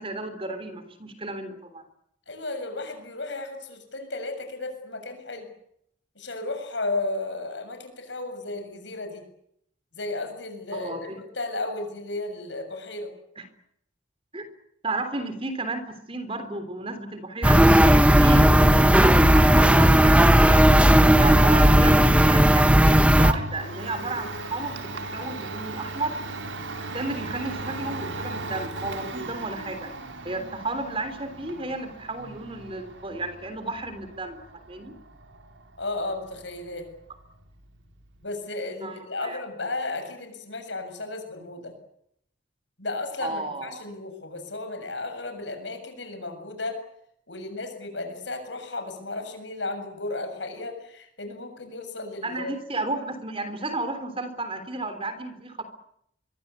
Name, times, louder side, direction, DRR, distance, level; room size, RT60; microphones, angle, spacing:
voice 1, 0.0-1.8 10.7-11.2 13.4-13.5 14.3-14.4 14.8-17.8 18.2-20.7 21.1-26.2 26.9-29.9 30.2-34.4 34.7-34.9 38.8-39.4 43.2-43.8 52.2-55.6, right 2 dB, 30° right, 10 dB, 3.4 m, -33 dB
voice 2, 2.3-5.5 6.2-9.2 9.9-13.1 35.8-36.9 38.2-41.7 42.8-46.8 47.3-52.6, left 2 dB, 75° left, 6 dB, 7.4 m, -34 dB
sound 1, 17.4-23.3, right 1 dB, 5° right, 1.2 m, -16 dB
Domestic sounds home sounds, 22.4-38.2, right 2 dB, 85° right, 4.2 m, -38 dB
25.0 x 23.0 x 8.3 m, 0.72 s
head